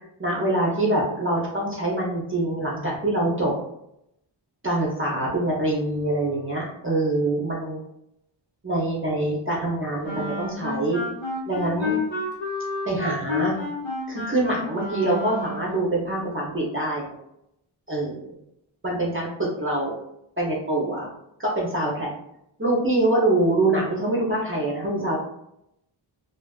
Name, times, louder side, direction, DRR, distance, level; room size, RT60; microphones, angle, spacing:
voice 1, 0.2-3.5 4.6-7.8 8.6-11.0 11.5-12.0 12.9-13.6 14.1-17.1 17.9-18.4 18.8-19.9 20.4-21.1 21.4-22.1 22.6-25.2, right 1 dB, 25° right, -4 dB, 0.7 m, -25 dB
Wind instrument woodwind instrument, 10.0-15.8, left 3 dB, 75° left, 0.9 m, -30 dB
2.4 x 2.3 x 2.3 m, 0.80 s
wide cardioid pair, 60°, 47 cm